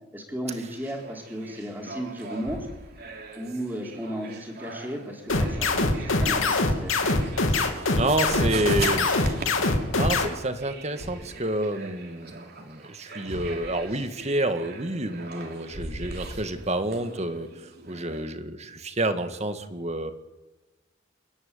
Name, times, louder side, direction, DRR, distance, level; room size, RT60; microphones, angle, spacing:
voice 1, 0.1-2.7 3.3-7.1, equal, 10° right, 1 dB, 4.1 m, -35 dB
sound 1, 0.6-18.3, right 3 dB, 50° right, 3.3 m, -42 dB
Thump thud, 2.4-2.9 5.3-6.0 8.2-8.7 11.0-11.5 13.3-13.9 15.7-16.7, equal, 80° right, 6.0 m, -38 dB
sound 2, 5.3-10.3, left 3 dB, 85° left, 3.1 m, -23 dB
voice 2, 7.5-9.5 9.9-20.1, right 1 dB, 35° right, 8 dB, 1.9 m, -29 dB
29.5 x 11.0 x 9.8 m, 1.1 s
head